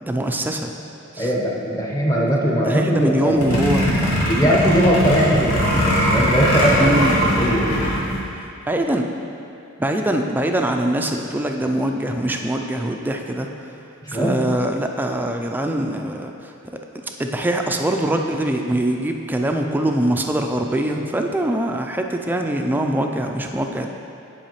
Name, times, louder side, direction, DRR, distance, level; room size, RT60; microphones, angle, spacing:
voice 1, 0.0-0.7 1.1-1.3 2.6-4.5 6.8-7.3 8.3-9.1 9.8-13.5 14.1-16.5 17.2-23.9, right 1 dB, 10° right, 3 dB, 0.3 m, -23 dB
voice 2, 1.2-3.4 4.3-5.6 6.1-6.9 7.3-7.8 14.0-14.4, equal, 15° left, -3 dB, 0.9 m, -19 dB
sound 1, 3.3-8.2, equal, 85° left, 1.4 m, -20 dB
10.0 x 4.8 x 3.0 m, 2.7 s
head